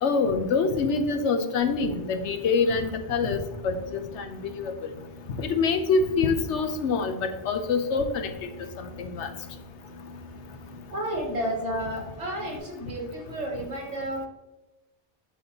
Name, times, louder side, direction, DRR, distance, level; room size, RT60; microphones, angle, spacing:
voice 1, 0.0-4.7 5.4-8.3 8.8-9.3, left 4 dB, 80° left, 7 dB, 1.1 m, -25 dB
Boat Water vehicle, 1.6-12.6, left 3 dB, 60° left, 2.6 m, -45 dB
voice 2, 10.9-14.3, right 1 dB, 85° right, -2 dB, 2.1 m, -31 dB
10.5 x 4.1 x 2.9 m, 1.1 s
omnidirectional pair, 1.2 m